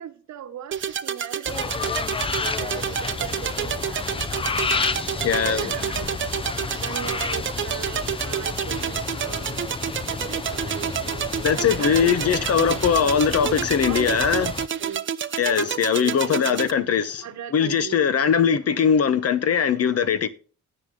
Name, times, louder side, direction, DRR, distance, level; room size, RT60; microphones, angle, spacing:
voice 1, 0.0-1.8 2.2-2.3 2.6-4.3 4.7-6.2 6.8-9.7 10.1-13.2 13.9-14.4 14.8-15.0 15.6-16.6 17.2-18.0, right 10 dB, 65° right, 1.1 m, -38 dB
sound 1, 0.7-16.7, right 8 dB, 40° right, 0.7 m, -29 dB
sound 2, 1.5-14.7, left 4 dB, 20° left, 0.5 m, -31 dB
voice 2, 5.2-5.8 11.4-14.5 15.4-20.3, left 7 dB, 55° left, 1.1 m, -21 dB
9.9 x 9.6 x 3.8 m
cardioid pair, 90°, 30 cm